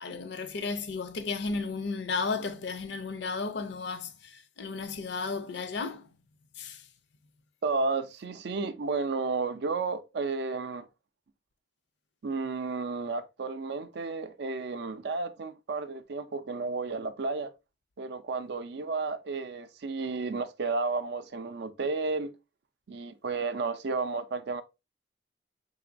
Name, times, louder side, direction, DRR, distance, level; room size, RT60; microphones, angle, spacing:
voice 1, 0.0-6.1 6.6-6.8, left 4 dB, 70° left, 0.5 m, -34 dB
voice 2, 7.6-10.9 12.2-17.5 18.0-22.3 22.9-24.6, right 4 dB, 65° right, 0.4 m, -32 dB
4.1 x 2.9 x 2.5 m
head